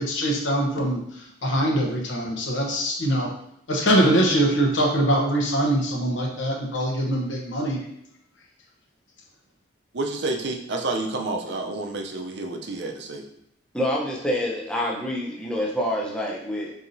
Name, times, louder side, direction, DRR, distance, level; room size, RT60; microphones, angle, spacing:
voice 1, 0.0-3.3 3.7-7.8, right 1 dB, 70° left, 0 dB, 0.9 m, -23 dB
voice 2, 9.9-13.2, right 2 dB, 60° right, 3 dB, 0.6 m, -29 dB
voice 3, 13.7-16.7, equal, 5° left, -3 dB, 0.7 m, -27 dB
4.6 x 4.0 x 2.7 m, 0.77 s
head